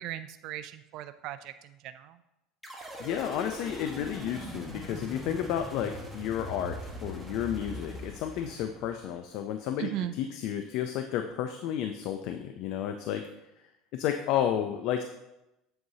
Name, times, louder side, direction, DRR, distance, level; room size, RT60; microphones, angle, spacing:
voice 1, 0.0-2.2 9.8-10.1, right 13 dB, 60° right, 11 dB, 0.3 m, -37 dB
sound 1, 2.6-9.1, equal, ahead, 1.4 m, -41 dB
voice 2, 3.0-13.2 13.9-15.0, left 10 dB, 65° left, 6 dB, 0.5 m, -32 dB
7.8 x 7.6 x 2.8 m, 0.92 s
supercardioid pair, 125°, 0 cm